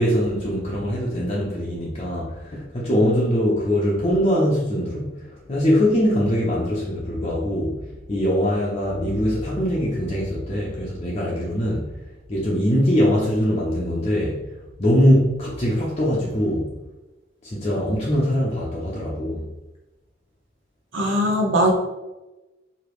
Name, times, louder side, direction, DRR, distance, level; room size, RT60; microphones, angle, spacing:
voice 1, 0.0-5.1 5.5-11.9 12.3-14.4 14.8-16.7 17.4-19.5, equal, 35° left, -5 dB, 0.8 m, -22 dB
voice 2, 20.9-21.7, equal, 85° right, 0 dB, 0.8 m, -20 dB
4.9 x 2.9 x 3.1 m, 1.1 s
head